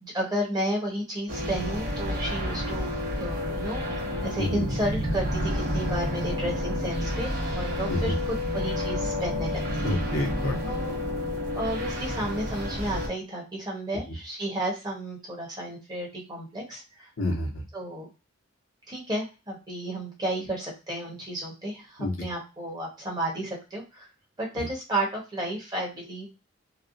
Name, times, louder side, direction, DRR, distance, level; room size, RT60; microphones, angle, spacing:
voice 1, 0.0-2.9 3.2-3.8 4.2-9.6 9.9-10.0 10.6-11.0 11.5-17.1 17.7-18.1 18.9-24.1 24.4-26.3, right 1 dB, 20° right, -2 dB, 1.1 m, -32 dB
sound 1, 1.3-13.1, left 1 dB, 45° right, 1.0 m, -30 dB
voice 2, 9.8-10.5 17.2-17.6 22.0-22.1, left 1 dB, 85° left, 1 dB, 0.8 m, -28 dB
3.2 x 2.1 x 2.6 m, 0.28 s
head